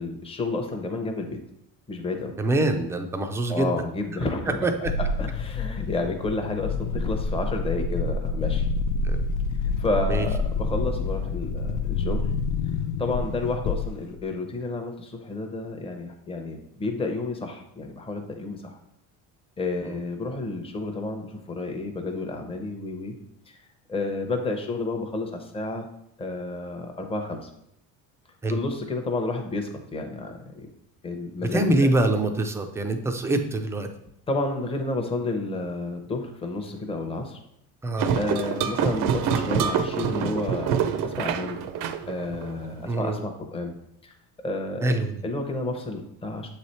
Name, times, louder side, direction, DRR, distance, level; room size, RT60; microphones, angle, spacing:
voice 1, 0.0-1.4 1.9-2.4 3.5-4.6 5.2-8.7 9.8-12.3 13.0-18.7 19.6-23.1 23.5-23.6 23.9-25.9 26.2-27.5 28.5-30.7 31.0-31.9 34.3-37.4 38.2-41.6 42.1-43.7 44.0-44.1 44.4-44.9 45.2-46.5, left 2 dB, 15° left, 4 dB, 0.7 m, -30 dB
voice 2, 2.4-3.7 4.5-4.9 9.0-9.2 10.1-10.3 19.8-20.0 28.4-28.6 31.4-33.9 37.8-38.1 42.9-43.3 44.8-45.2, right 1 dB, 10° right, 5 dB, 0.4 m, -25 dB
sound 1, 4.9-14.2, left 4 dB, 55° left, 0.4 m, -27 dB
sound 2, 38.0-42.9, right 7 dB, 60° right, 0.5 m, -26 dB
7.4 x 3.2 x 4.2 m, 0.75 s
cardioid pair, 140°, 38 cm